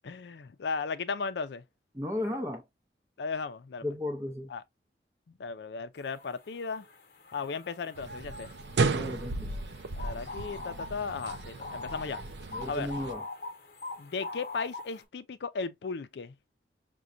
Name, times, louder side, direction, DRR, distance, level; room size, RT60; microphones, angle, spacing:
voice 1, 0.0-1.6 3.2-3.8 4.5-4.6 5.4-6.9 7.3-8.5 10.0-12.2 12.7-12.9 14.0-16.3, left 4 dB, 80° left, 0.4 m, -36 dB
voice 2, 1.9-2.6 3.8-4.5 8.9-9.5 12.5-13.2, left 1 dB, 15° right, 0.6 m, -34 dB
sound 1, 6.1-6.3 6.6-15.0, left 3 dB, 55° left, 0.9 m, -43 dB
sound 2, 8.0-13.1, right 3 dB, 85° right, 0.5 m, -34 dB
6.0 x 2.2 x 2.5 m
head